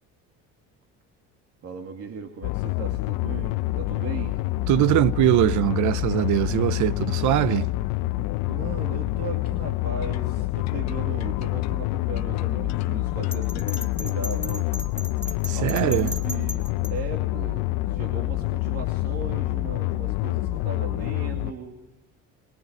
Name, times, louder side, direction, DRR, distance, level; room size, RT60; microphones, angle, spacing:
voice 1, 1.6-4.4 8.5-14.7 15.6-21.8, right 5 dB, 45° right, 2.4 m, -37 dB
sound 1, 2.4-21.5, left 17 dB, 80° left, 0.8 m, -27 dB
voice 2, 4.7-7.7 15.5-16.1, right 14 dB, 65° right, 0.8 m, -22 dB
sound 2, 10.0-14.0, left 12 dB, 55° left, 1.2 m, -39 dB
Bell, 13.3-16.9, equal, 5° left, 2.0 m, -36 dB
23.5 x 21.0 x 9.4 m
cardioid pair, 130°, 33 cm